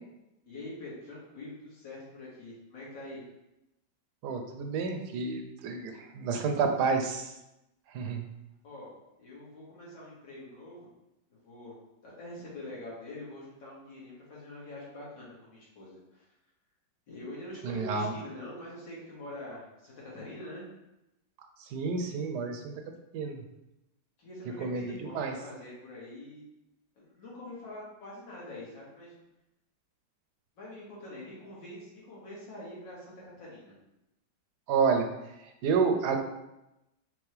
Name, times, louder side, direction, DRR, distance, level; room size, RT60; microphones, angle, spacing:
voice 1, 0.5-3.2 8.6-8.9 9.2-10.9 11.3-11.8 12.0-16.2 17.1-20.6 24.2-26.4 27.0-29.1 30.6-33.7, left 1 dB, 85° left, -6 dB, 2.3 m, -45 dB
voice 2, 4.2-7.3 7.9-8.2 17.6-18.1 21.7-22.7 23.1-23.4 24.6-25.3 34.7-35.1 35.6-36.2, right 5 dB, 75° right, 5 dB, 1.1 m, -29 dB
5.2 x 3.0 x 3.2 m, 0.90 s
omnidirectional pair, 2.0 m